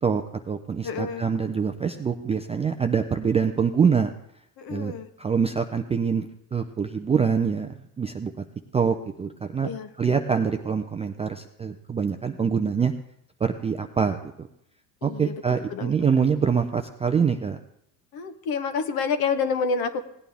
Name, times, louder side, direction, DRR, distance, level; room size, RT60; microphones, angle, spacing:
voice 1, 0.0-4.1 4.7-4.9 5.2-7.7 8.0-8.3 8.7-9.7 10.0-12.9 13.4-14.5 15.0-17.6, right 6 dB, 15° right, 5 dB, 0.3 m, -25 dB
voice 2, 0.8-1.2 4.6-5.1 9.6-9.9 15.0-15.3 15.7-15.9 18.1-20.0, left 5 dB, 50° left, 10 dB, 1.1 m, -28 dB
17.0 x 9.1 x 3.4 m, 0.74 s
supercardioid pair, 110°, 46 cm